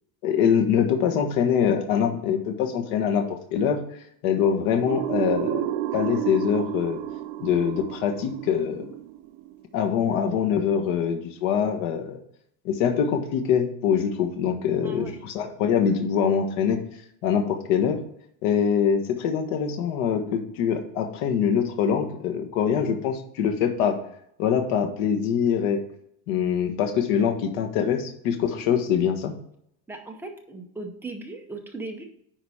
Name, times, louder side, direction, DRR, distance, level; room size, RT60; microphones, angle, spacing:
voice 1, 0.2-3.8 4.2-5.6 5.9-7.0 7.4-8.9 9.7-12.2 12.6-16.8 17.2-18.0 18.4-24.0 24.4-25.8 26.3-29.3, left 7 dB, 70° left, 4 dB, 1.5 m, -24 dB
sound 1, 4.9-9.6, right 12 dB, 50° right, 0.7 m, -31 dB
voice 2, 14.8-15.2 29.9-32.0, right 3 dB, 5° right, 1 dB, 0.6 m, -37 dB
10.0 x 4.0 x 4.9 m, 0.72 s
cardioid pair, 175°, 46 cm